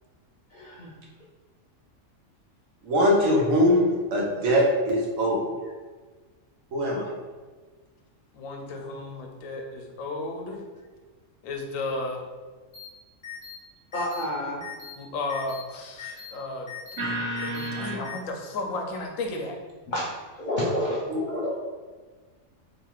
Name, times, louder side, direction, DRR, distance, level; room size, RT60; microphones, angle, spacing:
voice 1, 0.5-0.9 13.9-14.6 19.9-20.1 20.4-21.5, left 1 dB, 70° left, -6 dB, 0.4 m, -29 dB
voice 2, 2.8-5.4 6.7-7.1 17.0-18.0 21.1-21.2, equal, 85° right, -2 dB, 1.1 m, -23 dB
voice 3, 8.3-10.6 11.4-12.2 15.0-19.6, left 2 dB, 90° left, 2 dB, 1.0 m, -34 dB
sound 1, 12.7-12.9 13.2-13.6 13.9-14.2 14.6-14.9 15.3-15.6 16.0-16.3 16.7-17.0 17.4-17.7 18.0-18.2, left 10 dB, 50° left, 0.8 m, -40 dB
2.9 x 2.8 x 2.4 m, 1.4 s
omnidirectional pair, 1.3 m